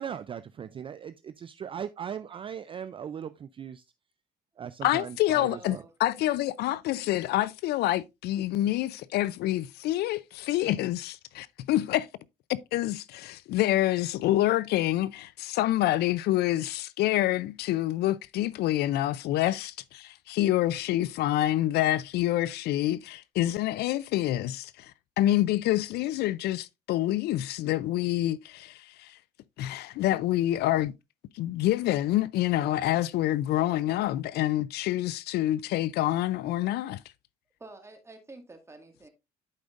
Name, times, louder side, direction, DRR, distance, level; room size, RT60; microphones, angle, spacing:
voice 1, 0.0-3.9 4.6-5.8, right 8 dB, 30° right, 0.4 m, -38 dB
voice 2, 4.8-12.1 12.5-24.9 25.2-29.2 29.6-30.9 31.3-37.0, left 14 dB, 75° left, 0.4 m, -27 dB
voice 3, 5.4-5.9 37.6-39.1, right 2 dB, 15° right, 1.8 m, -48 dB
11.5 x 5.0 x 2.5 m
cardioid pair, 110°, 17 cm